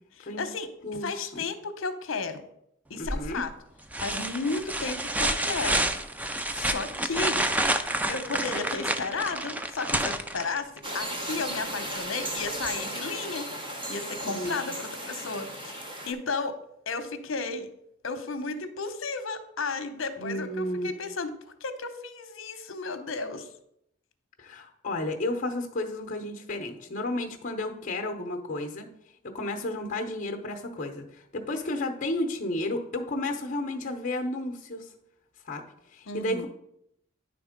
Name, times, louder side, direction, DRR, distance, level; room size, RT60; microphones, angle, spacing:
voice 1, 0.2-0.7 1.0-2.4 2.9-3.5 4.0-5.8 6.5-7.4 8.1-13.5 13.9-16.6 16.9-17.7 18.0-21.3 21.6-23.5 36.1-36.5, left 4 dB, 70° left, 10 dB, 0.8 m, -33 dB
voice 2, 0.8-1.5 3.0-3.4 14.2-14.6 20.2-20.9 24.4-28.9 29.2-34.9 35.4-35.6 35.9-36.5, left 1 dB, 40° left, 4 dB, 0.8 m, -32 dB
sound 1, 3.1-3.4 3.9-10.9 12.6-12.7, right 1 dB, 5° right, 0.3 m, -29 dB
sound 2, 10.8-16.1, right 1 dB, 25° right, 0.8 m, -35 dB
10.0 x 3.5 x 5.1 m, 0.76 s
head